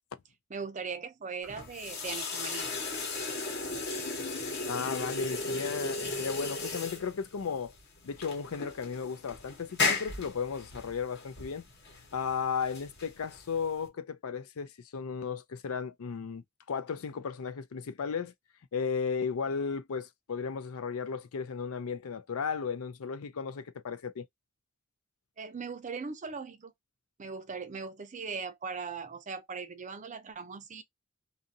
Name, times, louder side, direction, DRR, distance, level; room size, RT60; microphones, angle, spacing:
voice 1, 0.5-2.7 25.4-26.7 27.2-30.8, right 5 dB, 35° right, 0.5 m, -39 dB
sound 1, 1.4-13.9, left 3 dB, 50° left, 1.1 m, -36 dB
voice 2, 4.7-7.7 8.0-11.6 12.1-18.3 18.7-24.3, left 6 dB, 75° left, 0.5 m, -35 dB
2.7 x 2.5 x 2.6 m
head